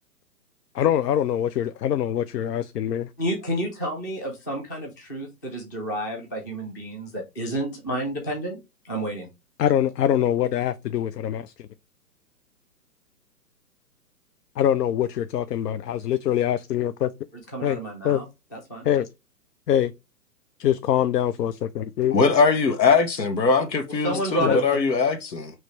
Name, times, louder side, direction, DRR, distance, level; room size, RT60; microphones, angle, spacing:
voice 1, 0.7-3.1 9.6-11.7 14.6-17.1 17.6-17.8 18.0-18.2 18.8-19.1 19.7-19.9 20.6-22.1 24.1-24.6, left 10 dB, 70° left, 0.5 m, -24 dB
voice 2, 3.2-8.6 8.8-9.3 17.5-18.3 18.5-18.9 24.0-24.8, right 1 dB, 15° left, 0.4 m, -30 dB
voice 3, 22.1-25.5, left 4 dB, 90° left, 1.1 m, -21 dB
4.9 x 3.1 x 3.0 m
hypercardioid pair, 135°, 49 cm